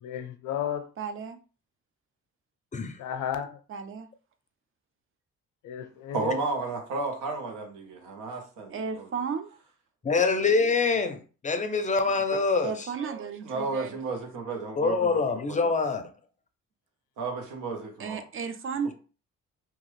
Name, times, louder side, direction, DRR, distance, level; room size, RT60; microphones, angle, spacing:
voice 1, 0.0-0.9 3.0-3.6 5.6-6.4, left 9 dB, 80° left, 0.6 m, -33 dB
voice 2, 1.0-1.4 3.7-4.1 8.7-9.6 12.6-13.9 18.0-18.9, right 6 dB, 45° right, 0.5 m, -34 dB
voice 3, 6.1-9.1 12.3-12.4 13.5-15.2 15.5-15.7 17.2-18.2, right 3 dB, 85° right, 0.9 m, -33 dB
voice 4, 10.0-12.9 14.8-16.1, left 4 dB, 25° left, 0.4 m, -25 dB
2.9 x 2.3 x 3.1 m
cardioid pair, 90°, 30 cm